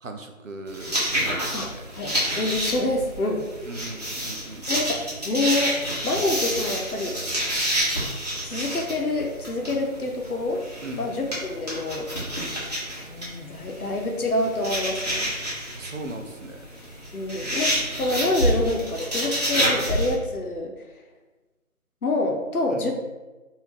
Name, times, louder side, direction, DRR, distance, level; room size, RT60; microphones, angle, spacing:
voice 1, 0.0-1.8 3.7-4.6 10.8-11.1 15.7-16.6 17.7-17.8 22.7-22.9, right 2 dB, 65° right, 5 dB, 0.6 m, -38 dB
sound 1, 0.7-20.1, equal, 30° right, 0.9 m, -28 dB
voice 2, 1.5-3.5 4.7-5.8 6.0-7.2 8.4-10.6 11.0-12.1 13.1-15.3 17.1-20.7 22.0-23.0, left 2 dB, 85° left, 2 dB, 0.8 m, -27 dB
3.5 x 2.6 x 3.0 m, 1.2 s
figure-of-eight pair, 170°, 43 cm